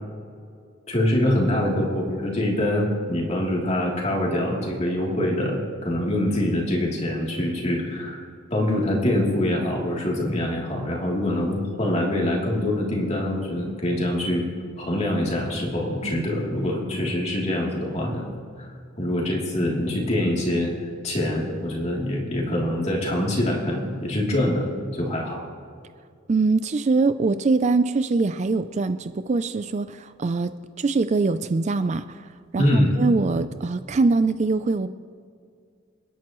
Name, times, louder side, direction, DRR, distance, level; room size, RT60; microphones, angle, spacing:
voice 1, 0.9-8.2 8.5-14.5 14.8-18.3 18.6-18.7 19.0-20.7 21.0-25.4 32.6-32.9, left 1 dB, 35° left, -3 dB, 3.1 m, -24 dB
voice 2, 26.3-30.5 30.8-34.9, right 3 dB, 35° right, 12 dB, 0.4 m, -23 dB
29.0 x 10.5 x 3.1 m, 2.2 s
head